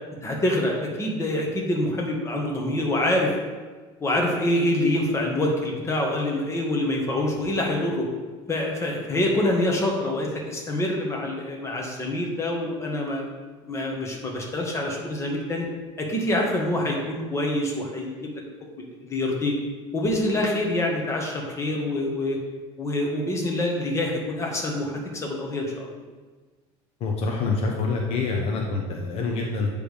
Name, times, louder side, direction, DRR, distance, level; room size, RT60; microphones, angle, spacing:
voice 1, 0.2-3.3 4.0-8.1 8.5-13.2 13.6-15.7 16.0-18.4 18.8-19.5 19.9-22.4 22.8-25.9, left 1 dB, 20° left, -1 dB, 1.5 m, -26 dB
voice 2, 27.0-29.7, left 3 dB, 55° left, 0 dB, 0.9 m, -26 dB
8.8 x 3.4 x 5.1 m, 1.3 s
cardioid pair, 120°, 13 cm